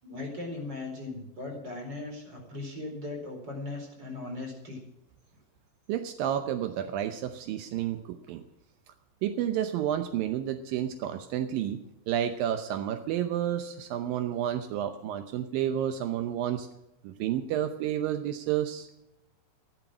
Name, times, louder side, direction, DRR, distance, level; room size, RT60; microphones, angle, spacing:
voice 1, 0.0-4.8, left 2 dB, 30° right, 1 dB, 4.7 m, -38 dB
voice 2, 5.9-8.4 9.2-16.7 17.0-18.9, right 10 dB, 80° right, 8 dB, 2.5 m, -30 dB
14.0 x 12.0 x 6.0 m, 0.89 s
omnidirectional pair, 4.0 m